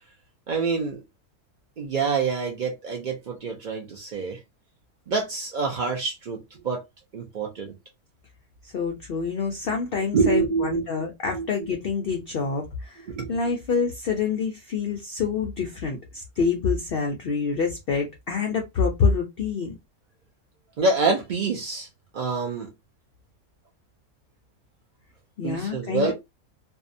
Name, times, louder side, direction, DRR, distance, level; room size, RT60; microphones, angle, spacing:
voice 1, 0.5-1.0 1.8-4.4 5.1-6.8 7.1-7.7 10.1-10.8 11.3-11.7 13.1-13.4 20.8-21.9 22.1-22.7 25.4-26.1, right 4 dB, 75° right, 0.4 m, -26 dB
voice 2, 8.6-19.8 25.4-26.1, left 5 dB, 75° left, 0.5 m, -27 dB
2.6 x 2.1 x 2.5 m
omnidirectional pair, 1.6 m